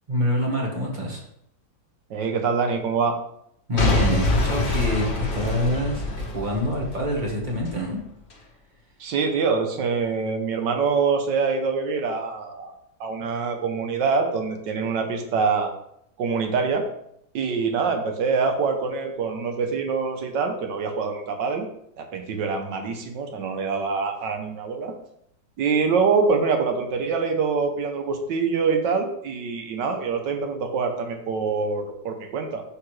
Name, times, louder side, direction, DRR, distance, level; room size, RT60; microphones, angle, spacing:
voice 1, 0.1-1.2 3.7-8.0, left 1 dB, 30° right, -2 dB, 1.2 m, -26 dB
voice 2, 2.1-3.2 9.0-12.7 13.0-15.7 16.2-16.8 17.3-21.7 22.0-24.9 25.6-32.6, right 5 dB, 70° right, 5 dB, 1.5 m, -25 dB
Boom / Shatter / Crushing, 3.8-7.8 8.3-8.4, left 2 dB, 35° left, 1.1 m, -25 dB
6.1 x 5.8 x 3.2 m, 0.74 s
omnidirectional pair, 2.1 m